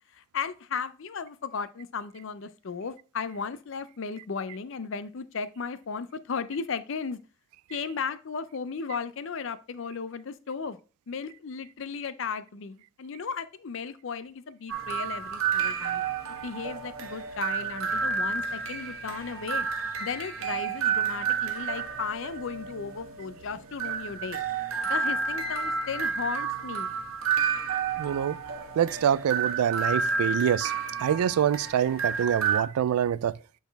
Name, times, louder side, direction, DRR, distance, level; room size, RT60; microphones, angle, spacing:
voice 1, 0.1-7.2 7.7-10.8 11.1-16.0 16.4-19.7 20.0-24.4 24.8-26.9, left 5 dB, 60° left, 0.5 m, -35 dB
sound 1, 14.7-32.6, right 6 dB, 70° right, 1.1 m, -30 dB
voice 2, 28.0-28.4 28.8-30.7 31.0-33.4, right 9 dB, 85° right, 0.3 m, -25 dB
8.1 x 4.2 x 3.4 m
head